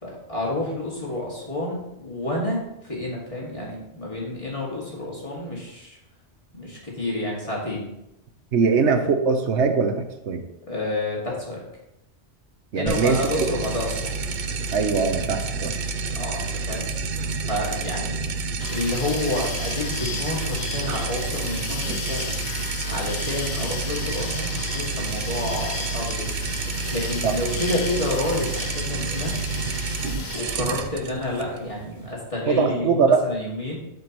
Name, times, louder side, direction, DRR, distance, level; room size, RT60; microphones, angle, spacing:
voice 1, 0.0-6.0 6.5-7.9 10.7-11.6 12.8-14.1 16.2-16.9 17.5-18.2 18.7-22.3 22.9-26.3 26.9-29.3 30.3-33.8, left 1 dB, 30° left, -4 dB, 2.3 m, -29 dB
voice 2, 8.5-10.4 12.7-13.5 14.7-15.7 20.9-21.0 27.2-27.4 32.5-33.2, right 5 dB, 90° right, 6 dB, 1.1 m, -21 dB
sound 1, 12.9-32.1, right 4 dB, 55° right, 0.7 m, -29 dB
sound 2, 18.6-30.6, left 6 dB, 70° left, 0.9 m, -35 dB
11.5 x 5.2 x 3.0 m, 0.86 s
omnidirectional pair, 1.1 m